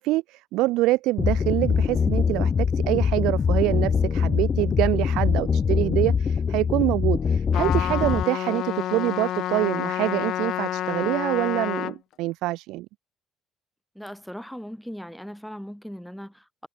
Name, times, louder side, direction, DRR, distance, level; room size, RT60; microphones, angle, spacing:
voice 1, 0.0-12.9, right 19 dB, 65° right, 0.3 m, -25 dB
sound 1, 1.2-8.2, left 6 dB, 40° left, 0.4 m, -23 dB
Trumpet, 7.5-12.0, left 12 dB, 55° left, 1.2 m, -29 dB
voice 2, 13.9-16.7, equal, ahead, 3.1 m, -38 dB
figure-of-eight pair, 55°, 0 cm